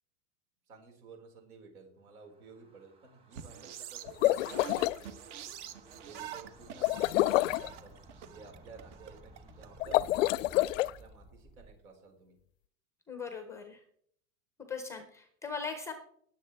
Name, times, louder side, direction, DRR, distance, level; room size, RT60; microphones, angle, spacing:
voice 1, 0.7-5.2 5.9-7.9 8.3-12.4, right 4 dB, 85° right, 2 dB, 5.0 m, -54 dB
sound 1, 2.1-11.8, right 1 dB, 15° right, 1.2 m, -57 dB
sound 2, 3.3-9.9, right 9 dB, 55° right, 1.2 m, -46 dB
sound 3, 4.0-5.0 6.8-7.7 9.8-10.9, left 16 dB, 65° left, 0.5 m, -27 dB
voice 2, 13.1-13.8 14.7-15.9, left 5 dB, 5° left, 6 dB, 0.5 m, -39 dB
20.0 x 7.5 x 3.4 m, 0.65 s
supercardioid pair, 165°, 42 cm